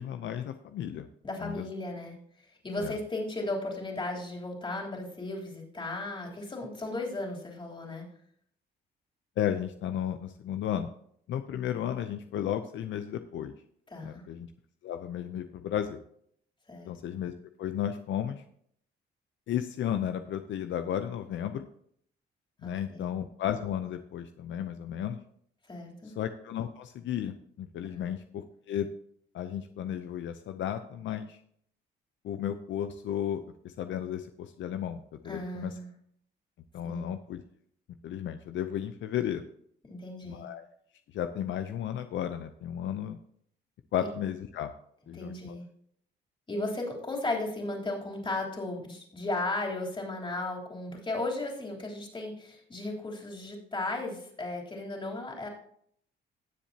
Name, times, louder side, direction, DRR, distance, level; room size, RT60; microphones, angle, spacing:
voice 1, 0.0-1.1 1.4-1.6 2.8-3.0 9.4-10.9 11.3-13.5 14.0-14.5 14.8-16.0 16.9-17.3 17.6-18.4 19.5-21.7 22.6-25.2 26.2-28.9 29.3-31.4 32.2-35.7 36.7-37.4 38.0-39.4 40.3-40.6 41.1-43.2 43.9-44.7 45.1-45.6, left 10 dB, 70° left, 9 dB, 0.6 m, -34 dB
voice 2, 1.2-8.0 13.9-14.2 16.7-17.0 22.6-23.1 25.7-26.2 27.9-28.1 35.2-35.9 36.8-37.1 39.9-40.5 45.1-45.6 46.5-55.5, left 2 dB, 25° left, -1 dB, 3.3 m, -35 dB
17.5 x 7.3 x 2.8 m, 0.65 s
cardioid pair, 90°, 20 cm